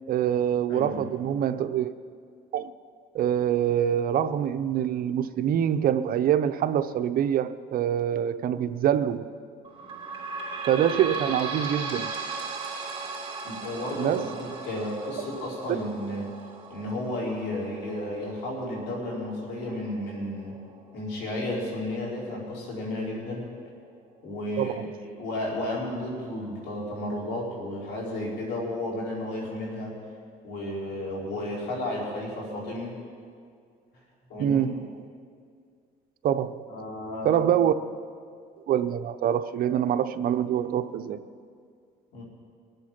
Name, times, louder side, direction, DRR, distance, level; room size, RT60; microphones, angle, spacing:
voice 1, 0.1-1.9 2.5-2.7 3.1-9.2 10.7-12.1 14.0-14.3 24.6-24.9 34.4-34.9 36.2-36.6 37.2-37.7 38.7-41.2, right 10 dB, 60° right, 0.7 m, -25 dB
voice 2, 0.7-1.0 13.4-16.3 16.7-20.6 20.9-23.5 24.2-24.8 25.2-30.0 30.4-33.0 34.3-34.7 36.7-37.5 42.1-42.2, left 1 dB, 85° left, 4.8 m, -33 dB
sound 1, 9.6-22.8 23.4-23.5 23.7-23.8 24.6-24.7, right 4 dB, 30° right, 2.9 m, -38 dB
23.5 x 8.0 x 5.9 m
cardioid pair, 110°, 17 cm